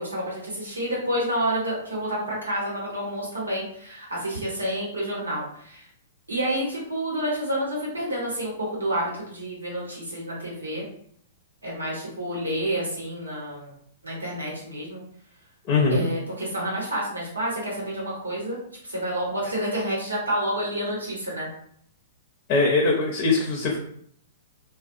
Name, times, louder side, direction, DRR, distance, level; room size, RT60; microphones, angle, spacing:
voice 1, 0.0-5.9 6.3-10.8 11.6-13.7 14.0-15.0 15.9-21.5, right 1 dB, 85° right, -4 dB, 1.0 m, -29 dB
voice 2, 15.7-16.0 22.5-23.8, left 3 dB, 40° left, 0 dB, 0.6 m, -21 dB
2.4 x 2.1 x 2.5 m, 0.65 s
figure-of-eight pair, 110°, 0 cm